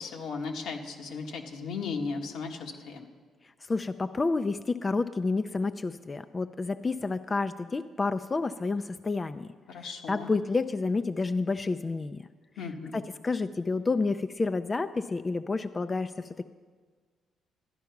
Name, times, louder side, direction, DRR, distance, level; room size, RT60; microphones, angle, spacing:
voice 1, 0.0-3.0 9.7-10.3 12.6-13.0, left 4 dB, 80° left, 2 dB, 1.4 m, -36 dB
voice 2, 3.7-9.5 9.8-12.2 12.9-16.4, left 3 dB, 30° left, 10 dB, 0.4 m, -29 dB
12.5 x 10.0 x 5.9 m, 1.5 s
cardioid pair, 90°, 0 cm